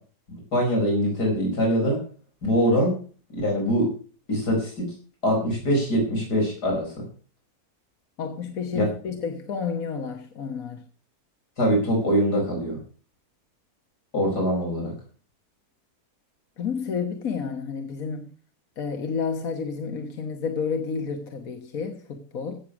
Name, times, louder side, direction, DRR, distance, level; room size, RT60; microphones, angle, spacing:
voice 1, 0.3-2.0 2.4-2.9 3.3-3.9 4.3-4.9 5.2-7.0 8.7-8.8 11.6-12.8 14.1-14.9, equal, 90° left, 5.3 m, -23 dB
voice 2, 8.2-10.9 16.6-18.3 18.8-22.6, left 6 dB, 65° left, 1.7 m, -30 dB
16.5 x 6.8 x 6.1 m
omnidirectional pair, 1.7 m